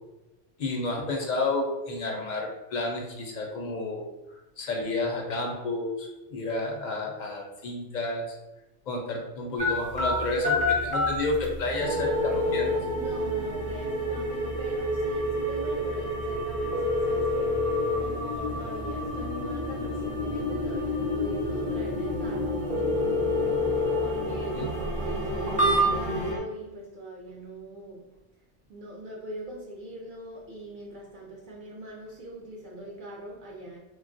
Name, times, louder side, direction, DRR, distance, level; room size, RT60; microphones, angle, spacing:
voice 1, 0.6-4.0 4.6-8.2 8.9-12.7 24.5-24.7, left 2 dB, 55° left, 1 dB, 0.5 m, -30 dB
sound 1, 9.6-26.3, left 2 dB, 10° right, 0.4 m, -29 dB
sound 2, 11.8-26.4, equal, 35° right, 0.9 m, -31 dB
voice 2, 13.0-22.8 23.6-28.4 28.7-33.8, right 1 dB, 55° right, -3 dB, 0.6 m, -42 dB
3.3 x 2.3 x 2.5 m, 1.0 s
omnidirectional pair, 1.2 m